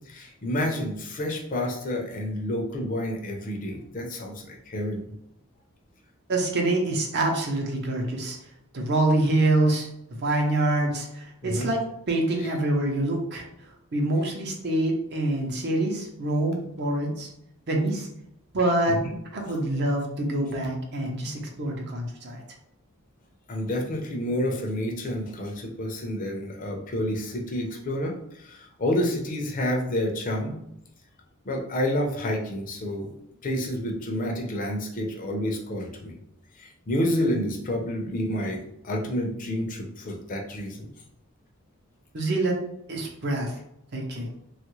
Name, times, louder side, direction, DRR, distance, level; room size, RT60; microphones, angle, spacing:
voice 1, 0.1-5.0 11.4-11.7 18.9-19.1 23.5-30.6 31.5-33.1 33.4-36.1 36.6-40.9, left 1 dB, 35° left, 1 dB, 0.5 m, -29 dB
voice 2, 6.3-8.4 8.7-13.5 13.9-17.3 17.7-18.1 18.5-19.0 19.3-22.4 42.1-42.6 42.9-43.6 43.9-44.3, right 2 dB, 50° right, 0 dB, 0.6 m, -26 dB
3.0 x 2.4 x 3.0 m, 0.80 s
head